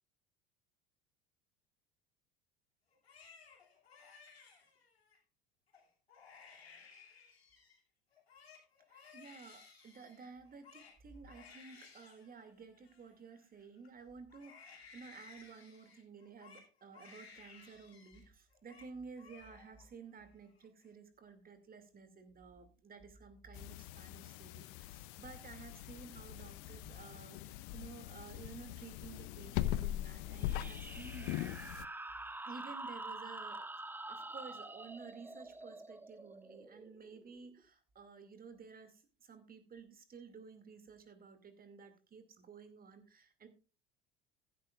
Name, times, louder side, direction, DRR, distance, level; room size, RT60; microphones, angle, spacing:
Crying sobbing, 2.9-5.2 5.7-5.8 6.1-7.8 8.1-13.9 14.3-18.2 18.5-18.9 19.2-19.9 20.2-20.9, left 5 dB, 85° left, 2.7 m, -59 dB
voice 1, 8.9-31.8 32.4-33.7 34.1-43.5, right 5 dB, 30° right, 9 dB, 2.4 m, -53 dB
sound 1, 23.5-31.8, left 14 dB, 60° left, 0.7 m, -41 dB
sound 2, 30.4-37.6, right 2 dB, 5° right, 0.6 m, -47 dB
15.0 x 11.5 x 2.4 m, 0.33 s
hypercardioid pair, 70°, 30 cm